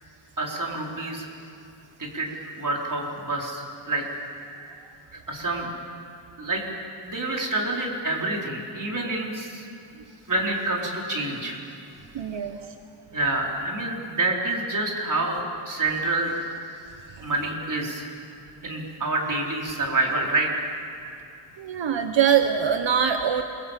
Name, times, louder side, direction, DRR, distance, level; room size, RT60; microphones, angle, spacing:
voice 1, 0.4-1.3 2.0-2.3 2.5-4.0 4.4-4.8 5.3-5.7 6.4-6.6 7.0-9.7 10.3-11.6 13.1-16.3 16.9-18.1 18.6-20.5, right 2 dB, 45° right, -1 dB, 4.5 m, -27 dB
voice 2, 12.1-12.7 21.6-23.4, right 8 dB, 85° right, 7 dB, 1.1 m, -23 dB
27.5 x 23.0 x 7.5 m, 2.6 s
wide cardioid pair, 120°, 43 cm